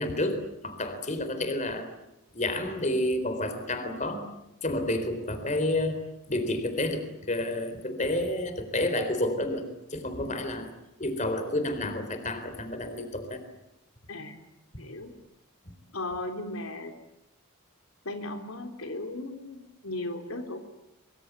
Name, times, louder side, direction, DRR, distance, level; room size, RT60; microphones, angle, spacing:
voice 1, 0.0-1.9 2.3-4.3 4.6-6.0 6.3-9.6 9.9-10.7 11.0-13.4, left 1 dB, 35° left, 8 dB, 3.9 m, -30 dB
voice 2, 14.8-15.1 15.9-16.9 18.1-20.6, left 2 dB, 80° left, 5 dB, 3.4 m, -36 dB
24.5 x 24.5 x 8.2 m, 0.90 s
head